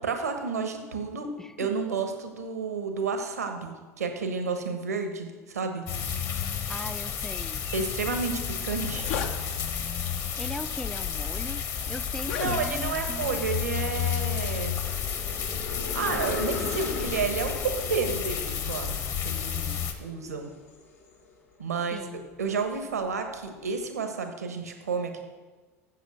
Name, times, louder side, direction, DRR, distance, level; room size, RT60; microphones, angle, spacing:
voice 1, 0.0-1.3 1.6-5.9 7.7-9.1 12.4-14.8 15.3-15.5 15.9-20.5 21.6-22.0 22.4-25.2, right 5 dB, 80° right, 5 dB, 1.2 m, -31 dB
voice 2, 1.4-1.7 6.7-7.6 10.4-13.4 21.9-22.3, left 1 dB, 5° left, 13 dB, 0.5 m, -39 dB
sound 1, 5.9-19.9, left 8 dB, 40° left, 1.4 m, -31 dB
sound 2, 8.2-8.3 8.6-9.4 10.2-10.4 11.1-11.2 12.1-13.0, left 7 dB, 60° left, 1.0 m, -34 dB
sound 3, 10.3-21.5 21.9-23.6, left 3 dB, 80° left, 2.1 m, -40 dB
8.3 x 7.2 x 7.6 m, 1.3 s
figure-of-eight pair, 75°, 8 cm